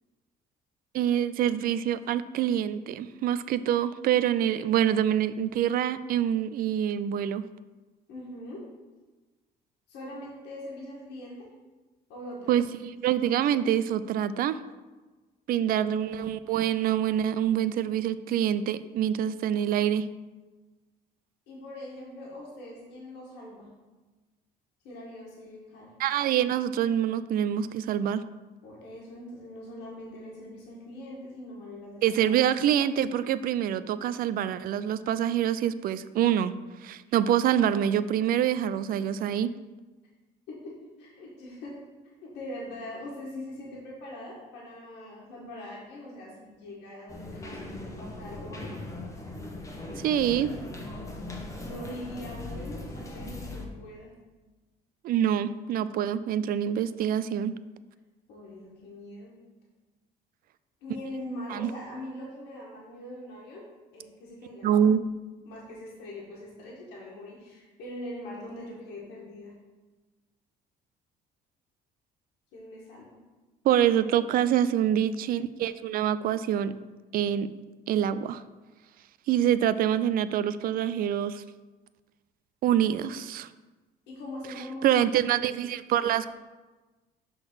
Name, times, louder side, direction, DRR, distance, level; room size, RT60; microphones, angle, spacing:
voice 1, 0.9-7.4 12.5-14.6 15.5-20.0 26.0-28.2 32.0-36.5 36.8-39.5 50.0-50.5 55.0-57.5 61.5-61.7 64.6-65.0 73.6-76.7 77.1-77.5 77.9-78.4 79.3-81.4 82.6-83.5 84.8-86.3, right 10 dB, 60° right, 14 dB, 0.4 m, -26 dB
voice 2, 8.1-8.6 9.9-11.5 12.1-12.5 15.6-15.9 21.5-23.7 24.8-25.9 28.6-32.4 40.5-40.7 41.0-41.8 42.2-48.7 51.6-54.1 58.3-59.3 60.8-64.9 65.5-69.5 72.5-73.1 84.1-85.5, left 1 dB, 85° left, -4 dB, 1.6 m, -42 dB
sound 1, 47.1-53.7, left 2 dB, 20° left, 1.1 m, -39 dB
6.1 x 3.9 x 6.1 m, 1.2 s
cardioid pair, 110°, 17 cm